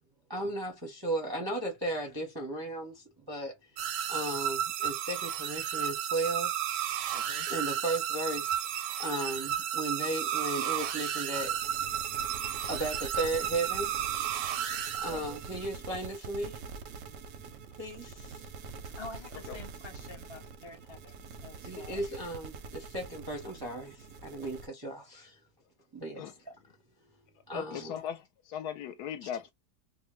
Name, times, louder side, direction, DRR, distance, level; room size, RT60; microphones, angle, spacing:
voice 1, 0.3-3.5 4.1-6.5 6.8-6.9 7.5-8.7 9.0-11.5 12.7-14.5 15.0-16.6 17.8-18.5 21.6-25.4 25.9-26.5 27.5-27.9 29.2-29.3, right 2 dB, 25° right, 0.5 m, -35 dB
sound 1, 3.8-15.6, right 10 dB, 90° right, 1.2 m, -33 dB
voice 2, 7.1-7.5 15.0-15.2 19.5-19.6 26.2-26.3 27.5-29.5, left 9 dB, 75° left, 1.1 m, -39 dB
sound 2, 11.3-24.7, right 4 dB, 70° right, 0.8 m, -45 dB
voice 3, 19.0-22.0, left 3 dB, 45° left, 0.3 m, -48 dB
2.8 x 2.1 x 3.0 m
omnidirectional pair, 1.9 m